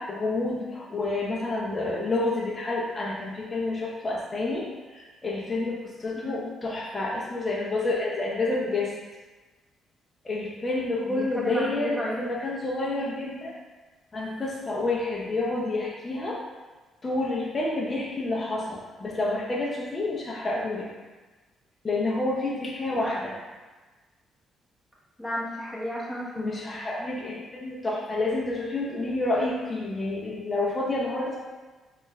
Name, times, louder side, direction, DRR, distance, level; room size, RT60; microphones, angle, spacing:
voice 1, 0.0-8.9 10.2-13.5 14.1-16.4 17.0-20.9 21.8-23.3 26.4-31.4, left 2 dB, 25° left, -4 dB, 0.7 m, -29 dB
voice 2, 11.0-12.2 23.0-23.1 25.2-26.5, equal, 5° left, -7 dB, 1.3 m, -33 dB
4.3 x 2.5 x 3.2 m, 1.3 s
cardioid pair, 90°, 0 cm